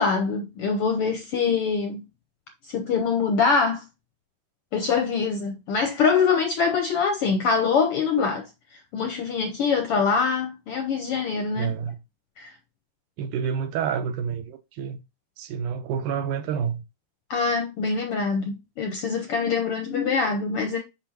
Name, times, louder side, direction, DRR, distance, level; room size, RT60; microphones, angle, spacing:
voice 1, 0.0-2.0 2.6-3.8 4.7-8.5 8.9-11.7 12.4-12.5 17.3-20.8, left 5 dB, 75° left, 1.3 m, -24 dB
voice 2, 11.6-12.0 13.2-15.0 15.4-16.8, right 7 dB, 85° right, 2.3 m, -28 dB
6.0 x 5.7 x 2.9 m
omnidirectional pair, 3.5 m